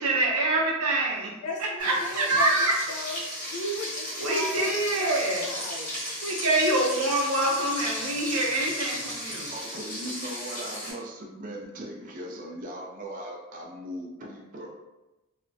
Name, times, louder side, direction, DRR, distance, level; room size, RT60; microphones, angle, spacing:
voice 1, 0.0-1.3 1.8-2.7 4.2-5.5 6.2-9.5, right 2 dB, 75° right, -2 dB, 0.6 m, -25 dB
voice 2, 1.4-4.7 5.0-5.2 5.4-5.9, left 1 dB, 85° left, -1 dB, 0.5 m, -36 dB
Frying (food), 1.8-10.9, equal, 35° left, 1.0 m, -35 dB
voice 3, 9.5-14.7, equal, 35° right, -1 dB, 0.3 m, -39 dB
2.4 x 2.0 x 2.5 m, 1.0 s
head